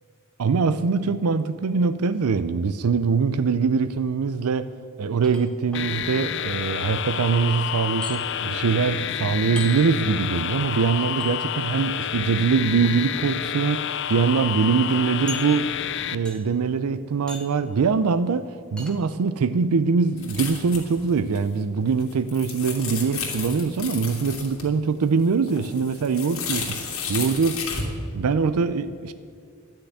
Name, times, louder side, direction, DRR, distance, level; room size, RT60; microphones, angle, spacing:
voice 1, 0.4-4.7 5.0-15.7 16.1-27.6 28.1-29.1, right 5 dB, 85° right, 0.4 m, -23 dB
sound 1, 5.2-5.8 8.0-8.2 9.6-9.7 11.2-11.3 12.7-12.9 13.7-13.8 14.1-14.2 15.3-15.9 16.2-16.6 17.3-17.6 18.8-19.0, left 2 dB, 5° left, 1.3 m, -38 dB
sound 2, 5.7-16.2, left 9 dB, 55° left, 0.5 m, -29 dB
sound 3, 20.2-21.1 21.4-21.5 21.9-24.7 25.0-27.9, left 5 dB, 75° left, 2.6 m, -33 dB
12.0 x 6.8 x 9.6 m
head